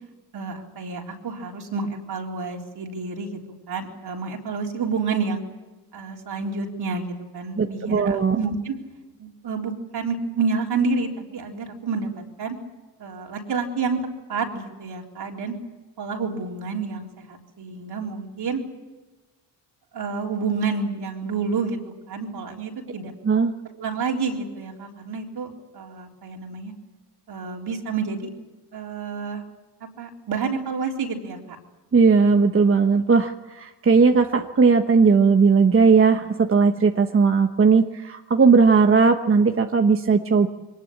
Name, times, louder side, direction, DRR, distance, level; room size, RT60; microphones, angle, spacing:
voice 1, 0.3-3.4 3.7-5.4 5.9-8.7 9.2-12.1 12.4-12.6 13.0-15.5 16.0-18.6 19.9-21.8 22.1-23.1 23.7-26.7 27.3-28.3 28.7-29.4 30.0-31.6, right 4 dB, 60° right, 1 dB, 3.9 m, -29 dB
voice 2, 7.6-8.4 23.2-23.5 31.9-40.5, right 5 dB, 30° right, 5 dB, 1.1 m, -18 dB
23.0 x 19.5 x 8.7 m, 1.2 s
cardioid pair, 95°, 43 cm